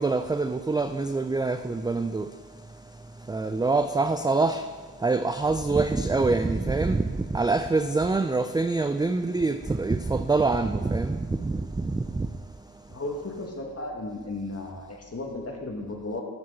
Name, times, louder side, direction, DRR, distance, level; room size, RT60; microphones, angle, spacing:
voice 1, 0.0-2.3 3.3-4.6 5.0-12.3, right 3 dB, 10° right, 8 dB, 0.4 m, -25 dB
voice 2, 12.9-16.2, left 2 dB, 35° left, 1 dB, 2.2 m, -35 dB
11.5 x 7.5 x 4.0 m, 1.4 s
hypercardioid pair, 40°, 44 cm